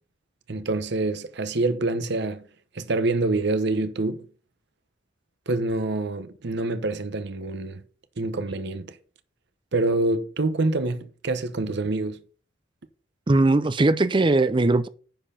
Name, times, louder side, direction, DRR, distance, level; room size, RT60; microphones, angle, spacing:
voice 1, 0.5-2.4 2.7-4.2 5.5-7.8 8.2-8.9 9.7-12.2, right 2 dB, 60° right, 0.9 m, -26 dB
voice 2, 13.3-14.9, right 2 dB, 25° right, 0.5 m, -19 dB
10.5 x 4.4 x 5.6 m
head